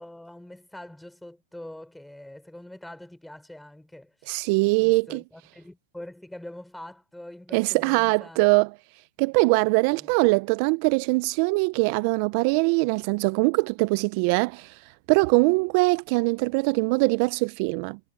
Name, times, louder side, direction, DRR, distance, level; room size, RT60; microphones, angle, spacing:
voice 1, 0.0-4.3 4.7-8.4 9.9-10.1, left 1 dB, 5° left, 5.2 m, -44 dB
voice 2, 4.3-5.2 7.5-8.7 9.2-18.0, right 28 dB, 50° right, 0.3 m, -22 dB
hypercardioid pair, 135°, 0 cm